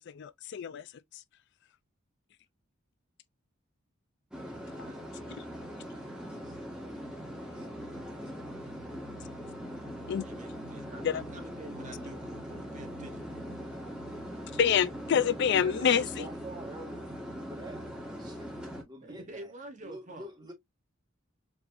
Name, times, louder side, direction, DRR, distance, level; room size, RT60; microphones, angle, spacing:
voice 1, 0.1-1.2 10.1-10.2 11.0-11.2 14.5-16.3, left 8 dB, 55° left, 0.4 m, -27 dB
sound 1, 4.3-18.8, equal, 5° right, 1.5 m, -41 dB
voice 2, 4.8-5.5 10.2-13.5 19.0-20.3, right 1 dB, 35° right, 1.1 m, -48 dB
voice 3, 5.9-8.3 15.0-19.5 19.8-20.5, right 1 dB, 20° right, 1.6 m, -48 dB
4.9 x 3.4 x 2.5 m
head